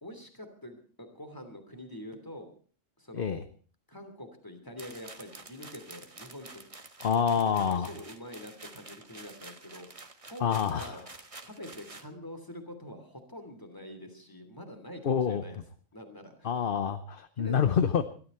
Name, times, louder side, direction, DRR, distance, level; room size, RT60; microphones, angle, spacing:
voice 1, 0.0-2.5 3.0-3.4 3.9-6.6 7.4-11.0 11.4-15.6 15.9-16.5 17.4-18.0, left 1 dB, 15° left, 6 dB, 3.1 m, -45 dB
sound 1, 4.8-12.1, right 3 dB, 30° right, 1.3 m, -49 dB
voice 2, 7.0-7.9 10.4-11.0 15.0-15.4 16.4-18.0, left 7 dB, 50° left, 10 dB, 1.0 m, -27 dB
22.0 x 13.0 x 4.4 m, 0.42 s
omnidirectional pair, 1.3 m